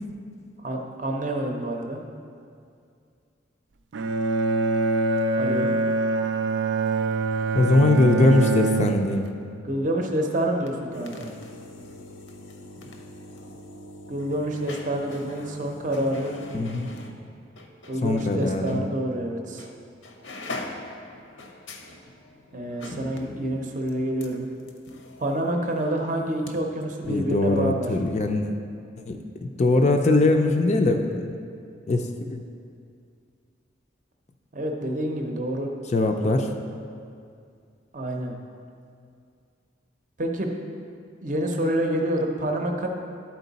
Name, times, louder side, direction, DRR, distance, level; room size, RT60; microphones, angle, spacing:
voice 1, 0.6-2.0 5.4-5.7 9.6-11.3 14.1-16.4 17.9-19.7 22.5-24.5 25.2-27.9 34.5-35.7 37.9-38.3 40.2-40.5 41.2-42.9, right 1 dB, 40° right, 2 dB, 0.7 m, -27 dB
Bowed string instrument, 3.9-9.4, right 3 dB, 70° right, 0.4 m, -24 dB
voice 2, 7.5-9.3 16.5-16.9 18.0-18.8 27.1-28.5 29.1-31.3 31.9-32.4 35.9-36.5, left 2 dB, 35° left, 4 dB, 0.4 m, -21 dB
sound 1, 10.6-18.3 18.7-18.8 19.6-19.8 20.0-26.5 26.8-26.9, left 1 dB, 80° left, 0.7 m, -42 dB
11.5 x 4.6 x 4.0 m, 2.3 s
head